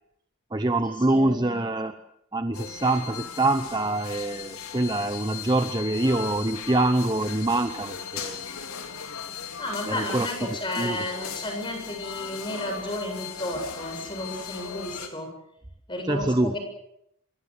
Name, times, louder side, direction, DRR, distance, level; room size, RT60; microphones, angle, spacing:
voice 1, 0.5-2.0 2.3-8.4 9.9-11.0 16.1-16.6, right 2 dB, 20° right, 8 dB, 0.9 m, -25 dB
voice 2, 1.1-1.6 9.6-15.3 15.9-16.6, left 1 dB, 20° left, 4 dB, 7.9 m, -33 dB
sound 1, 2.5-15.1, left 7 dB, 75° left, 4.0 m, -38 dB
27.5 x 23.0 x 6.8 m, 0.75 s
head